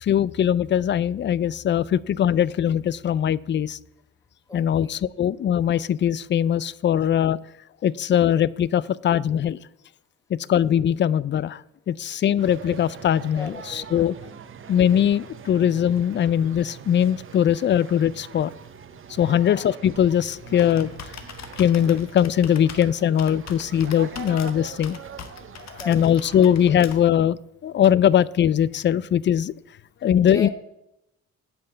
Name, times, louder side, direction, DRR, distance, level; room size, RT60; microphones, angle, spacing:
voice 1, 0.0-3.8 4.5-7.4 7.8-9.6 10.5-11.6 11.9-13.5 13.9-14.1 14.7-18.5 19.2-20.9 21.6-25.0 25.9-27.4 27.6-29.5 30.0-30.5, left 9 dB, 40° left, 21 dB, 0.4 m, -21 dB
voice 2, 4.5-5.0 13.3-13.9 17.3-17.4 19.2-19.5 25.8-26.1 30.2-30.5, left 2 dB, 10° left, 7 dB, 1.4 m, -38 dB
sound 1, 12.4-27.0, right 7 dB, 45° right, 0.9 m, -42 dB
Computer keyboard, 19.9-27.3, left 7 dB, 60° left, 1.2 m, -42 dB
8.8 x 5.6 x 7.9 m, 0.87 s
cardioid pair, 90°, 30 cm